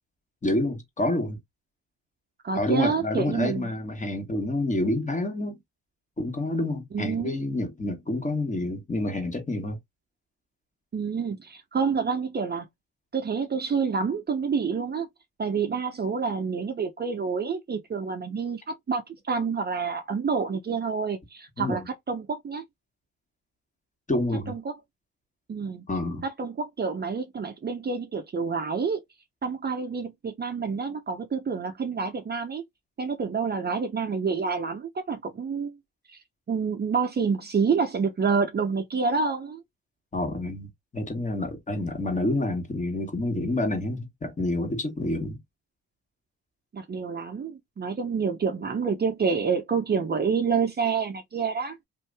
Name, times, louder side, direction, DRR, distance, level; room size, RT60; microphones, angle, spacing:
voice 1, 0.4-1.4 2.5-5.6 6.2-9.8 21.6-21.9 24.1-24.5 25.9-26.2 40.1-45.4, left 1 dB, 25° left, 1.5 m, -28 dB
voice 2, 2.4-3.7 6.9-7.4 10.9-12.7 13.1-15.1 15.4-22.6 24.5-24.7 25.5-25.8 26.2-29.0 29.4-32.6 33.0-35.8 36.1-36.2 36.5-39.6 46.7-51.8, right 5 dB, 35° right, 0.7 m, -28 dB
2.7 x 2.6 x 3.3 m
cardioid pair, 90°, 30 cm